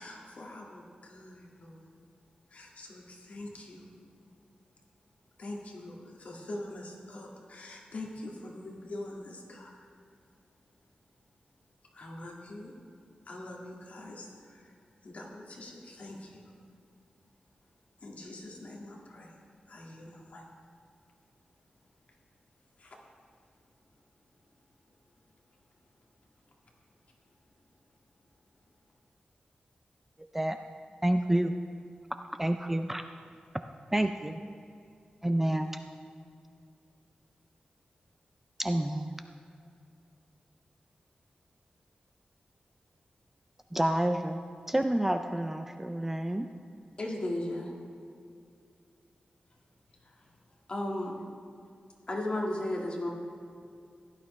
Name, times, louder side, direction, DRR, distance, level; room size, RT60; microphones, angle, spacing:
voice 1, 0.0-1.9 2.5-3.9 5.4-9.9 11.9-12.8 13.3-14.7 15.0-16.4 18.0-19.4 19.7-20.5 22.8-23.0, left 1 dB, 55° left, -2 dB, 1.8 m, -44 dB
voice 2, 31.0-31.6 32.4-33.0 33.9-34.4 35.2-35.7 38.6-39.1 43.7-44.4 44.7-46.5, right 1 dB, 10° right, 7 dB, 0.4 m, -28 dB
voice 3, 47.0-47.7 50.7-51.1 52.1-53.1, left 1 dB, 35° left, -2 dB, 1.7 m, -32 dB
16.0 x 11.0 x 3.1 m, 2.5 s
wide cardioid pair, 160°, 3 cm